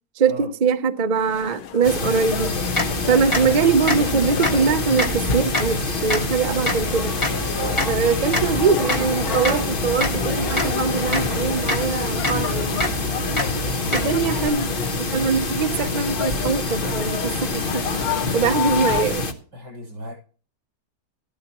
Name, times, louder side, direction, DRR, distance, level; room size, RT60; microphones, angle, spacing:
voice 1, 0.2-2.6 3.1-7.2 7.9-12.9 13.9-14.8 15.1-18.0 18.3-19.2, right 5 dB, 45° right, 0.5 m, -22 dB
sound 1, 1.1-19.0, left 9 dB, 60° left, 1.3 m, -33 dB
sound 2, 1.8-19.3, left 3 dB, 35° left, 1.1 m, -26 dB
sound 3, 2.3-14.5, left 1 dB, 15° left, 2.1 m, -28 dB
voice 2, 7.6-8.0 13.4-14.3 18.3-18.5 19.5-20.1, right 1 dB, 85° right, 7.7 m, -36 dB
13.5 x 13.0 x 3.0 m
omnidirectional pair, 1.8 m